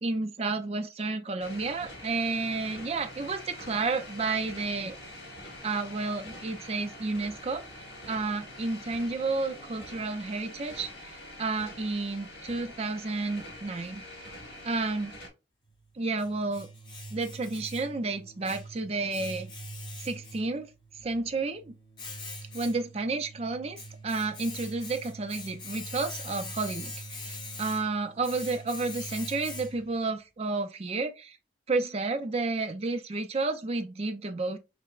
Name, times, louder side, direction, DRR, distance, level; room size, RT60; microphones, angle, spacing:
voice 1, 0.0-4.9 5.6-7.6 8.1-14.0 14.6-15.1 16.0-16.7 17.1-19.5 20.0-20.7 21.0-21.7 22.5-31.4 31.7-34.6, right 3 dB, 35° right, 0.4 m, -31 dB
sound 1, 1.4-15.3, left 1 dB, 60° left, 1.4 m, -45 dB
Domestic sounds home sounds, 15.7-30.0, left 1 dB, 25° left, 0.7 m, -43 dB
5.7 x 2.1 x 2.4 m
head